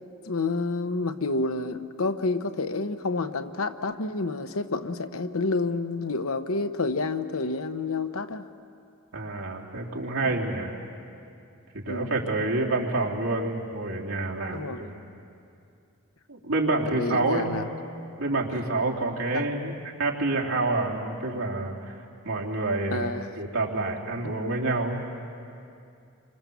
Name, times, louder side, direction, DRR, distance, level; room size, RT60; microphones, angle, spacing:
voice 1, 0.3-8.4 10.3-10.4 11.9-12.1 14.5-14.8 16.8-17.6 19.3-19.4 22.9-23.3 24.2-24.3, left 3 dB, 80° left, 10 dB, 1.1 m, -29 dB
voice 2, 9.1-10.7 11.7-15.0 16.3-17.5 18.2-19.7 20.0-22.0 22.2-25.1, right 2 dB, 75° right, -2 dB, 3.3 m, -28 dB
27.0 x 25.5 x 7.1 m, 2.5 s
head